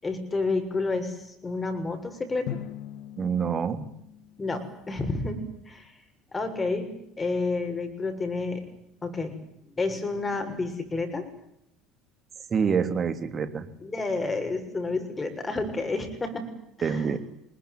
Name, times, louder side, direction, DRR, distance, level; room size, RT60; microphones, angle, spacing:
voice 1, 0.0-2.6 4.4-5.9 6.3-6.9 7.2-8.6 9.0-9.4 9.8-11.3 13.8-16.5 16.8-17.1, left 3 dB, 20° left, 7 dB, 6.9 m, -30 dB
Drum, 2.5-5.2, left 11 dB, 60° left, 2.2 m, -41 dB
voice 2, 3.2-3.9 12.5-13.7 16.8-17.2, right 6 dB, 35° right, 10 dB, 3.3 m, -26 dB
27.0 x 21.5 x 9.5 m, 0.75 s
figure-of-eight pair, 60°, 0 cm